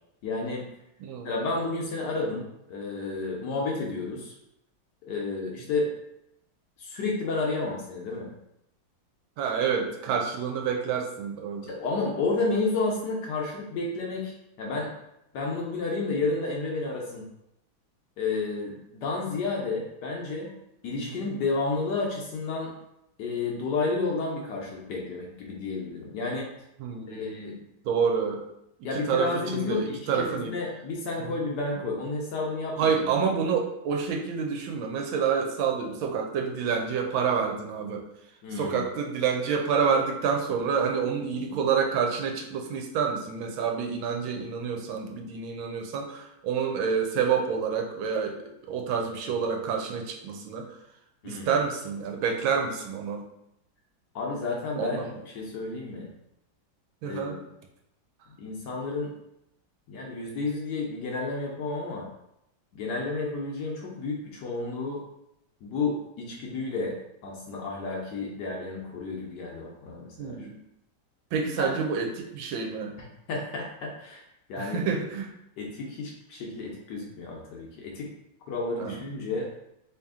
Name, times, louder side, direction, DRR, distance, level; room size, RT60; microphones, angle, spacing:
voice 1, 0.2-0.6 1.2-4.3 5.1-5.9 6.8-8.3 11.7-14.9 15.3-17.3 18.2-20.5 20.8-22.7 23.2-26.5 27.1-27.6 28.8-33.0 38.4-38.9 51.2-51.5 54.1-56.1 57.0-57.4 58.4-59.1 59.9-62.1 62.7-65.0 65.6-70.5 71.6-71.8 73.0-74.2 74.5-74.8 75.6-78.1 78.5-79.5, left 3 dB, 70° left, -1 dB, 1.1 m, -31 dB
voice 2, 1.0-1.4 9.4-11.7 21.0-21.3 26.8-27.6 27.8-28.4 28.9-30.6 31.2-31.3 32.8-38.0 38.6-50.8 51.2-53.2 54.8-55.2 57.0-57.4 70.2-70.5 71.3-72.9 74.6-75.3 78.8-79.0, right 6 dB, 85° right, 2 dB, 1.4 m, -28 dB
3.3 x 2.8 x 3.5 m, 0.82 s
omnidirectional pair, 2.2 m